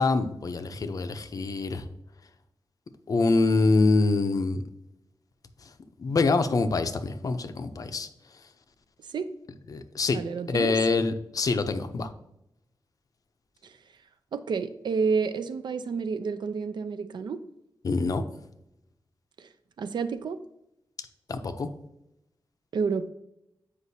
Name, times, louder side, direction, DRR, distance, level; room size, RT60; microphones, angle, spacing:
voice 1, 0.0-1.8 3.1-4.6 6.0-8.1 9.7-10.2 10.5-12.1 17.8-18.2 21.3-21.7, left 3 dB, 50° left, 9 dB, 0.5 m, -25 dB
voice 2, 10.1-10.8 13.6-13.7 14.3-17.4 19.4-19.5 19.8-20.4 22.7-23.1, right 5 dB, 70° right, 11 dB, 0.4 m, -29 dB
8.2 x 5.0 x 2.7 m, 0.84 s
wide cardioid pair, 150°, 8 cm